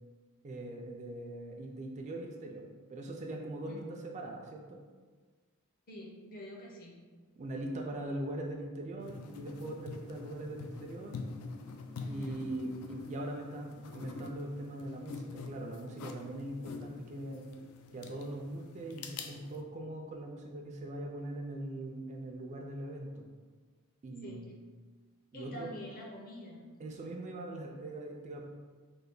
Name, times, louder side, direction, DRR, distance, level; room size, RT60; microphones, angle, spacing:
voice 1, 0.4-2.6 2.9-4.8 7.4-11.2 12.0-17.5 17.9-23.3 24.0-24.5 25.3-25.7 26.8-28.4, right 1 dB, 30° right, 0 dB, 0.3 m, -41 dB
voice 2, 5.9-7.1 12.0-12.5 24.2-24.4 25.3-26.7, left 1 dB, 40° left, -2 dB, 0.6 m, -47 dB
sound 1, 9.0-19.6, left 4 dB, 80° left, 0.4 m, -46 dB
3.2 x 2.2 x 3.7 m, 1.4 s
head